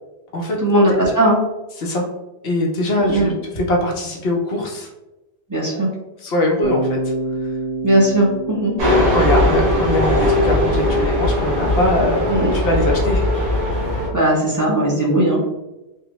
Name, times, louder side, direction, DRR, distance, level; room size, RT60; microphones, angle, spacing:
voice 1, 0.6-1.4 3.0-3.3 5.5-5.9 7.8-8.8 12.3-12.6 14.1-15.4, right 1 dB, 20° right, -5 dB, 0.8 m, -17 dB
voice 2, 2.4-4.9 5.7-5.8 6.2-7.0 9.1-13.2, left 1 dB, 75° left, 0 dB, 1.0 m, -22 dB
Bass guitar, 6.6-10.7, right 2 dB, 65° right, 0.8 m, -28 dB
sound 1, 8.8-14.1, left 1 dB, 85° right, 1.5 m, -18 dB
3.6 x 2.1 x 2.9 m, 0.99 s
omnidirectional pair, 1.0 m